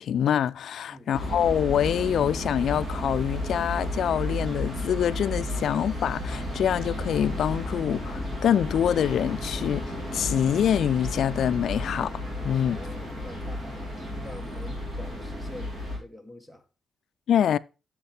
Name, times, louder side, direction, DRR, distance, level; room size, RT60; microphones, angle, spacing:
voice 1, 0.0-12.1 12.4-12.8 17.3-17.6, left 9 dB, 60° left, 0.3 m, -25 dB
sound 1, 1.1-16.0, left 1 dB, 35° right, 2.7 m, -33 dB
voice 2, 12.6-16.6, left 1 dB, 5° right, 1.0 m, -45 dB
8.4 x 6.4 x 3.3 m
wide cardioid pair, 175°, 0 cm